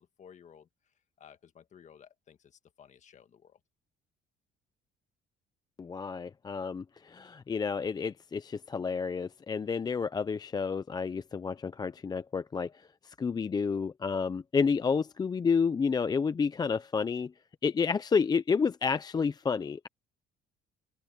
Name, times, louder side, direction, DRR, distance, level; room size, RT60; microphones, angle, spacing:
voice 1, 0.0-3.6, left 8 dB, 45° left, 1.7 m, -56 dB
voice 2, 5.8-17.3 17.6-19.9, left 5 dB, 25° left, 0.5 m, -30 dB
open air
cardioid pair, 110°, 17 cm